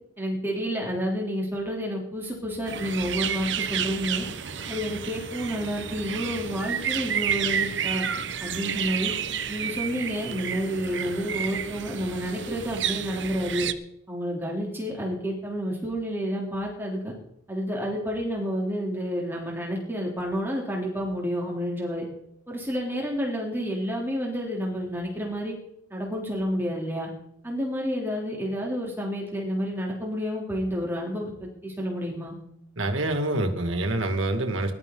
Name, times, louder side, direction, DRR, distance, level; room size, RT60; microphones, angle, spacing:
voice 1, 0.2-4.2 4.7-8.0 8.4-9.1 9.5-13.7 14.1-17.1 17.5-22.1 22.5-25.5 25.9-27.1 27.4-32.3, equal, 10° right, -2 dB, 3.3 m, -30 dB
sound 1, 2.7-13.7, right 8 dB, 65° right, 1.1 m, -31 dB
voice 2, 32.8-34.7, right 2 dB, 90° right, 6 dB, 2.3 m, -26 dB
20.5 x 12.0 x 3.9 m, 0.79 s
head